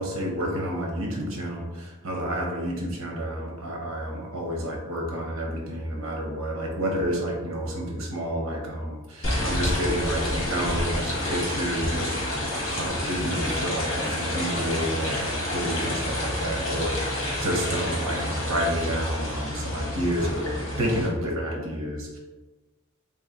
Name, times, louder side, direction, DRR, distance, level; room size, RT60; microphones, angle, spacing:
voice 1, 0.0-22.2, equal, 75° right, -1 dB, 0.8 m, -30 dB
sound 1, 9.2-21.1, left 1 dB, 65° left, 1.2 m, -29 dB
3.1 x 2.6 x 2.5 m, 1.2 s
head